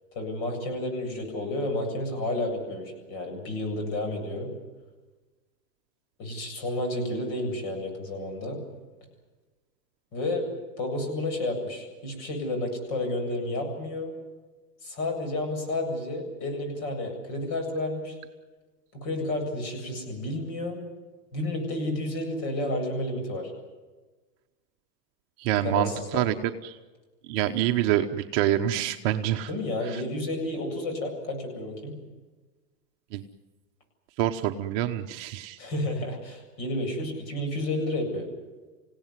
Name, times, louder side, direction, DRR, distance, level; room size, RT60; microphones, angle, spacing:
voice 1, 0.1-4.5 6.2-8.6 10.1-10.5 10.8-14.1 14.8-18.2 18.9-20.8 21.3-23.5 25.6-26.2 29.5-32.0 35.6-38.3, left 1 dB, 40° left, 4 dB, 8.0 m, -31 dB
voice 2, 25.4-26.8 27.3-29.5 29.8-30.0 33.1-33.2 34.2-35.6, right 12 dB, 35° right, 5 dB, 1.0 m, -26 dB
27.0 x 17.5 x 9.6 m, 1.3 s
supercardioid pair, 150°, 50 cm